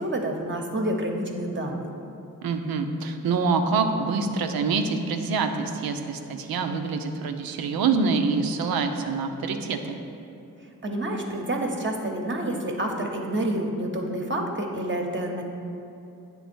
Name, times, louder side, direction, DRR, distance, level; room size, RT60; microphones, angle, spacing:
voice 1, 0.0-1.9 10.8-15.4, right 1 dB, 35° right, 2 dB, 0.9 m, -28 dB
voice 2, 2.4-10.0, right 4 dB, 85° right, 6 dB, 0.6 m, -26 dB
8.3 x 3.6 x 6.1 m, 2.8 s
cardioid pair, 80°, 35 cm